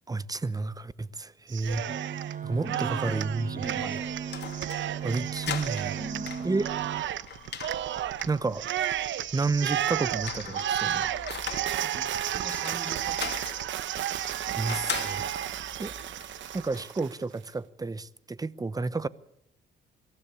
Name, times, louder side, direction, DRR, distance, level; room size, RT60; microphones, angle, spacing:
voice 1, 0.1-1.8 2.4-3.9 5.0-6.0 6.4-6.7 7.0-7.1 8.3-8.6 9.3-11.1 14.5-15.2 15.8-15.9 16.5-19.1, right 3 dB, 20° right, 0.8 m, -31 dB
Cheering, 1.5-2.3 2.6-17.1, right 11 dB, 70° right, 0.9 m, -32 dB
sound 1, 1.9-7.0, right 8 dB, 40° right, 1.6 m, -36 dB
voice 2, 2.6-3.3 3.5-4.2 5.9-6.5 11.8-13.7, left 1 dB, 5° left, 2.5 m, -42 dB
sound 2, 3.6-16.8, left 8 dB, 60° left, 2.6 m, -41 dB
23.0 x 15.5 x 8.4 m
cardioid pair, 90°, 20 cm